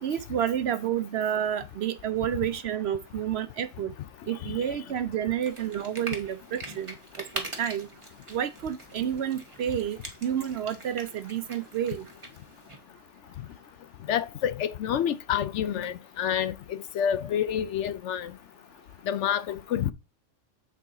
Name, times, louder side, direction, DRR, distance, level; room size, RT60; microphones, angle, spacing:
voice 1, 0.0-3.9 4.3-6.9 7.3-7.9 8.3-12.1, right 10 dB, 65° right, 0.7 m, -30 dB
sound 1, 5.4-12.8, right 2 dB, 25° right, 1.6 m, -42 dB
voice 2, 14.1-18.3 19.1-19.9, left 9 dB, 70° left, 0.9 m, -28 dB
8.4 x 4.8 x 3.8 m
omnidirectional pair, 1.3 m